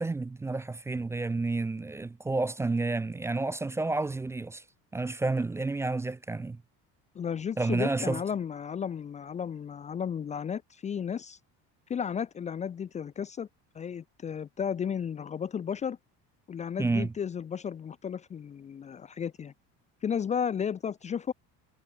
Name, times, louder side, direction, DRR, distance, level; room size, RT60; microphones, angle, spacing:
voice 1, 0.0-4.6 4.9-6.6 7.6-8.2 16.8-17.1, right 3 dB, 10° right, 0.5 m, -30 dB
voice 2, 7.1-11.4 11.9-13.5 13.7-16.0 16.5-19.5 20.0-21.3, left 7 dB, 20° left, 0.8 m, -33 dB
cardioid pair, 170°, 33 cm